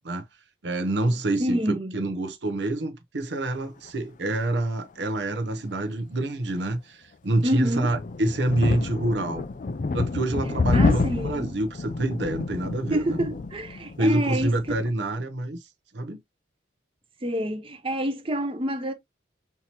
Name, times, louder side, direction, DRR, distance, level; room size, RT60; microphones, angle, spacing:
voice 1, 0.6-9.4 9.9-13.2 14.0-15.6 15.9-16.2, right 1 dB, 65° right, 0.7 m, -27 dB
voice 2, 1.4-1.9 7.4-8.0 10.7-11.6 12.9-14.5 17.2-18.9, right 1 dB, 30° right, 0.7 m, -27 dB
sound 1, 7.4-14.9, left 3 dB, 45° left, 0.4 m, -28 dB
5.7 x 2.9 x 2.9 m
head